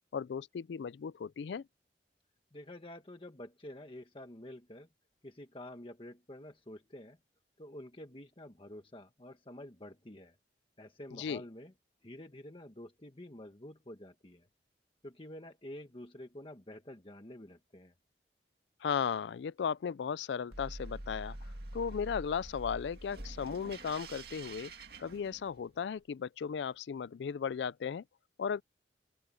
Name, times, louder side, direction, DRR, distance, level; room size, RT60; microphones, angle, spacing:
voice 1, 0.1-1.6 11.1-11.4 18.8-24.7 25.0-28.0 28.4-28.6, left 6 dB, 80° left, 0.4 m, -36 dB
voice 2, 2.5-4.9 5.2-7.2 7.6-10.4 10.8-11.7 12.0-14.5 15.0-17.9, left 1 dB, 30° left, 1.4 m, -49 dB
sound 1, 20.5-25.8, right 1 dB, 60° right, 2.1 m, -46 dB
open air
head